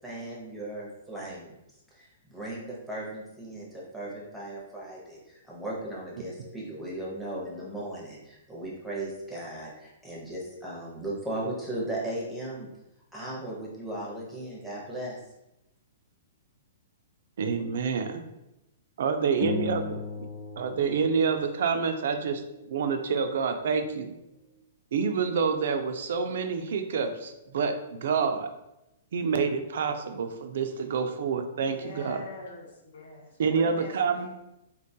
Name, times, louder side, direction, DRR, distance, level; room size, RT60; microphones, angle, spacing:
voice 1, 0.0-1.5 1.9-12.7 13.1-15.2, right 1 dB, ahead, -5 dB, 0.6 m, -37 dB
voice 2, 17.4-18.2 19.0-20.3 20.6-22.4 22.7-24.1 24.9-28.5 29.1-32.2 33.4-34.3, right 5 dB, 65° right, 7 dB, 0.3 m, -28 dB
sound 1, 19.4-22.0, left 5 dB, 50° left, 0.3 m, -37 dB
voice 3, 31.6-34.4, left 2 dB, 75° left, -2 dB, 0.9 m, -45 dB
3.5 x 2.2 x 2.7 m, 0.90 s
hypercardioid pair, 155°, 0 cm